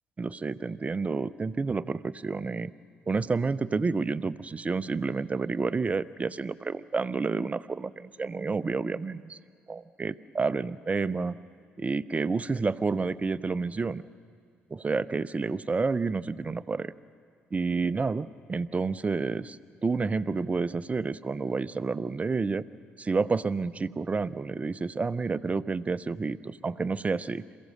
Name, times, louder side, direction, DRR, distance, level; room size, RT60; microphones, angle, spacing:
voice 1, 0.2-2.7 3.1-9.4 9.7-11.4 11.8-14.0 14.7-16.9 17.5-19.6 19.8-22.6 23.0-27.4, right 4 dB, 25° right, 16 dB, 0.6 m, -29 dB
27.5 x 15.5 x 6.5 m, 2.1 s
figure-of-eight pair, 45°, 5 cm